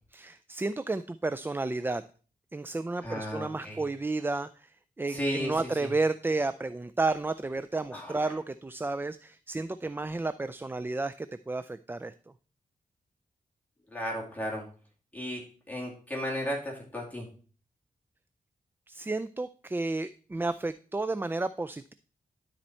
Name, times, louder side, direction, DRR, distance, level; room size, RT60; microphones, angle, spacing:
voice 1, 0.1-2.0 2.5-12.1 18.9-21.9, right 3 dB, 15° right, 13 dB, 0.3 m, -32 dB
voice 2, 3.0-3.8 5.1-5.9 7.9-8.2 13.9-14.6 15.1-17.3, equal, 10° left, -3 dB, 2.5 m, -34 dB
12.5 x 4.4 x 4.3 m, 0.40 s
cardioid pair, 80°, 16 cm